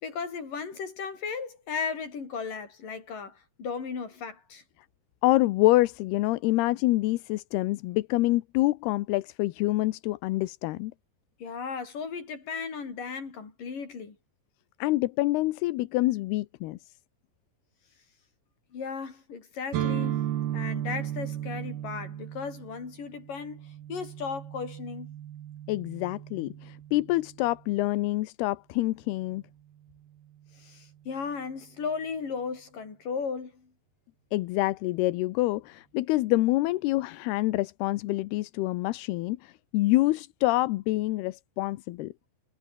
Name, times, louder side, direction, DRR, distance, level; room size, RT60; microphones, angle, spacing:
voice 1, 0.0-4.6 11.4-14.2 18.7-20.3 20.5-25.1 30.5-33.7, left 5 dB, 50° left, 6.4 m, -36 dB
voice 2, 5.2-10.9 14.8-16.8 25.7-29.4 34.3-42.1, left 18 dB, 75° left, 2.5 m, -26 dB
sound 1, 19.7-27.5, right 12 dB, 65° right, 3.5 m, -35 dB
omnidirectional pair, 5.2 m